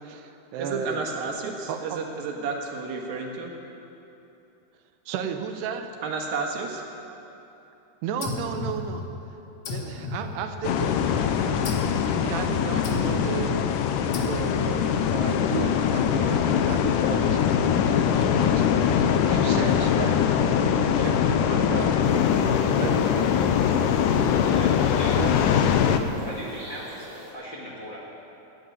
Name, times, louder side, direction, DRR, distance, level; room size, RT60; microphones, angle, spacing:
voice 1, 0.0-1.0 1.7-2.0 5.1-5.9 8.0-9.1 9.7-13.8 14.2-22.5 22.8-23.4 25.2-25.3, right 7 dB, 85° right, 7 dB, 3.0 m, -34 dB
voice 2, 0.6-3.5 6.0-6.8, right 4 dB, 65° right, 0 dB, 3.2 m, -31 dB
sound 1, 8.2-9.3 9.6-10.9 11.6-12.1 12.8-13.4 14.1-14.8, left 3 dB, 60° left, 1.6 m, -35 dB
sound 2, 10.6-26.0, left 8 dB, 85° left, 1.8 m, -22 dB
sound 3, 22.0-27.3, equal, 5° right, 3.5 m, -44 dB
voice 3, 24.4-25.2 26.3-28.0, equal, 40° left, -4 dB, 1.7 m, -38 dB
15.0 x 10.0 x 9.5 m, 3.0 s
omnidirectional pair, 4.6 m